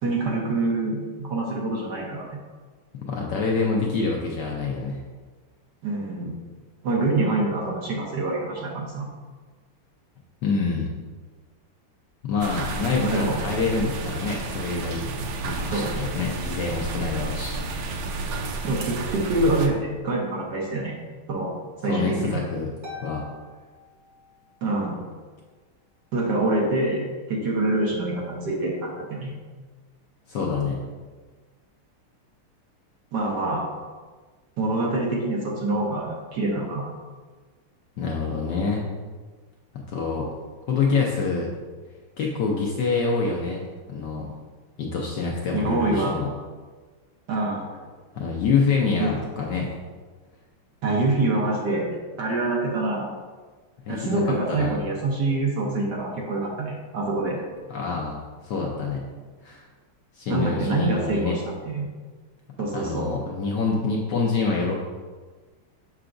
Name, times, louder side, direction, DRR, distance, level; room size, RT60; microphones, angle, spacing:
voice 1, 0.0-2.4 5.8-6.3 6.8-9.1 13.0-13.4 15.7-16.2 18.6-20.9 21.3-21.5 21.8-22.4 24.6-25.1 26.1-29.3 33.1-33.6 34.6-36.9 45.5-46.1 47.3-47.7 49.0-49.1 50.8-51.9 52.2-53.1 53.9-57.4 60.3-61.9 62.6-63.1, right 2 dB, 60° right, -2 dB, 1.3 m, -25 dB
voice 2, 3.1-5.0 10.4-10.9 12.2-15.0 15.4-17.6 21.9-22.7 23.0-23.2 30.3-30.8 38.0-38.8 39.9-40.3 40.7-41.5 42.2-43.6 43.9-44.3 44.8-46.3 48.2-49.8 53.9-54.2 54.5-54.8 57.7-59.0 59.4-59.6 60.1-61.4 62.7-64.7, left 4 dB, 65° left, -1 dB, 1.1 m, -26 dB
sound 1, 12.4-19.7, right 3 dB, 85° right, 0.9 m, -31 dB
Harp, 22.8-24.7, left 3 dB, 40° right, 0.6 m, -43 dB
6.6 x 5.8 x 2.5 m, 1.4 s
omnidirectional pair, 2.4 m